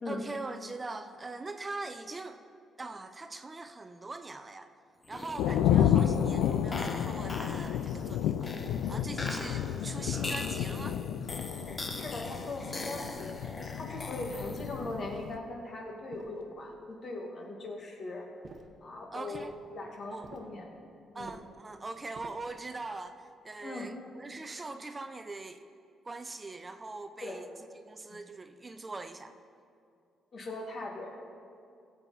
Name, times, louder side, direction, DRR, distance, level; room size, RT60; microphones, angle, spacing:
voice 1, 0.1-2.4 2.8-4.7 5.1-11.0 19.1-19.5 20.1-20.3 21.1-25.6 26.0-27.5 27.7-29.4, right 3 dB, 25° right, 8 dB, 0.5 m, -42 dB
sound 1, 5.0-14.9, left 2 dB, 30° left, 0.9 m, -41 dB
sound 2, 5.4-15.4, left 10 dB, 90° left, 0.3 m, -31 dB
sound 3, 11.6-12.0 12.6-13.3 13.8-14.3 14.8-15.5 16.1-16.8 18.4-18.8 19.3-19.6 20.2-20.6 21.2-21.6 22.1-22.6, right 4 dB, 50° right, 1.0 m, -52 dB
voice 2, 12.0-13.4 13.8-18.3 18.8-20.7 21.1-21.3 23.6-23.9 27.2-27.4 28.1-28.2 30.3-31.2, left 2 dB, 50° left, 1 dB, 1.9 m, -40 dB
16.0 x 7.4 x 4.1 m, 2.4 s
cardioid pair, 90°, 0 cm